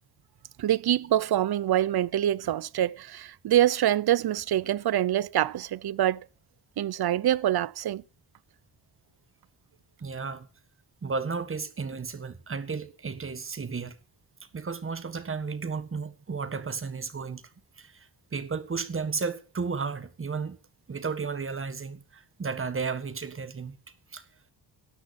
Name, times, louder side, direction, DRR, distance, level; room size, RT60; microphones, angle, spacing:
voice 1, 0.6-6.3 6.8-8.0, right 12 dB, 65° right, 0.7 m, -25 dB
voice 2, 10.0-10.5 11.0-13.9 14.5-17.4 17.8-20.6 20.9-23.8 24.1-24.2, right 5 dB, 30° right, 1.6 m, -33 dB
18.0 x 13.5 x 4.3 m
wide cardioid pair, 175°, 41 cm